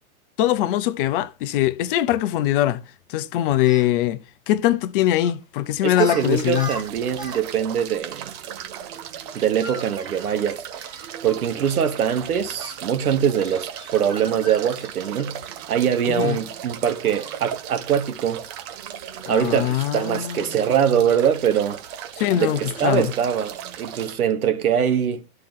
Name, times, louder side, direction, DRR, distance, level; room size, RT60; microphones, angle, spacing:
voice 1, 0.4-2.8 3.1-6.7 16.1-16.4 19.3-20.4 22.2-23.1, left 13 dB, 40° left, 0.6 m, -22 dB
Speech, 3.6-3.9 5.2-5.4 5.9-6.2 6.5-7.4 7.7-7.8 9.3-11.5 12.6-12.8 13.4-15.5 16.2-16.4 17.1-17.4, right 1 dB, 10° right, 1.6 m, -39 dB
voice 2, 5.8-8.3 9.3-10.6 11.2-15.4 15.7-18.4 19.3-21.8 22.3-25.2, right 8 dB, 75° right, 1.3 m, -23 dB
sound 1, 6.2-24.2, right 9 dB, 45° right, 1.1 m, -37 dB
12.0 x 4.4 x 3.6 m
hypercardioid pair, 110°, 44 cm